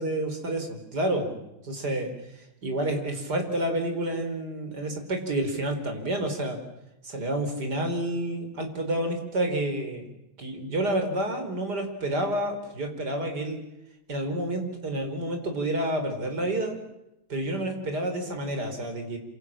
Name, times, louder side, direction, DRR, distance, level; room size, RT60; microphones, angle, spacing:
voice 1, 0.0-1.4 1.6-6.6 7.0-10.1 10.4-13.6 14.1-16.8 17.3-19.2, right 1 dB, 50° right, 5 dB, 5.0 m, -29 dB
27.0 x 27.0 x 7.5 m, 0.87 s
omnidirectional pair, 2.2 m